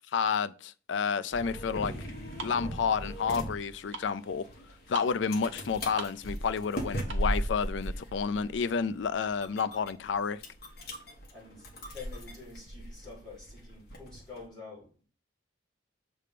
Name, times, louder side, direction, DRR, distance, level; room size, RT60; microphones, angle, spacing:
voice 1, 0.1-1.9 2.4-4.4 4.9-10.4, left 6 dB, 75° left, 0.4 m, -30 dB
sound 1, 1.2-7.4, right 3 dB, 90° right, 1.1 m, -45 dB
sound 2, 1.3-14.5, equal, 50° left, 1.4 m, -38 dB
voice 2, 11.3-15.0, left 4 dB, 5° left, 3.9 m, -48 dB
6.6 x 3.5 x 5.0 m
head